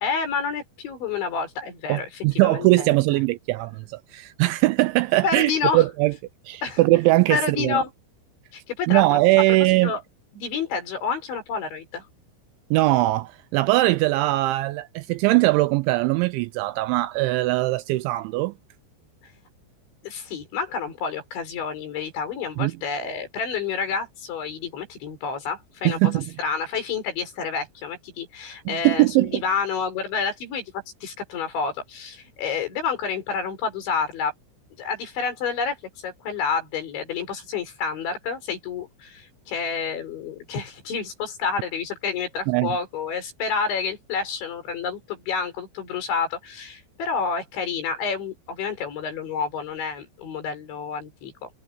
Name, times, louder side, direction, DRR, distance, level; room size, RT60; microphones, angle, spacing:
voice 1, 0.0-3.0 5.2-5.8 6.6-6.8 7.3-7.9 8.5-9.2 9.5-9.6 9.8-10.0 10.3-12.1 19.2-19.3 20.0-34.3 34.8-35.8 36.0-51.5, left 5 dB, 65° left, 7.5 m, -29 dB
voice 2, 1.9-6.1 6.5-7.8 8.9-9.9 12.7-18.5 22.6-22.7 25.9-26.3 28.7-29.4 42.5-42.8, right 19 dB, 85° right, 2.8 m, -21 dB
omnidirectional pair, 5.7 m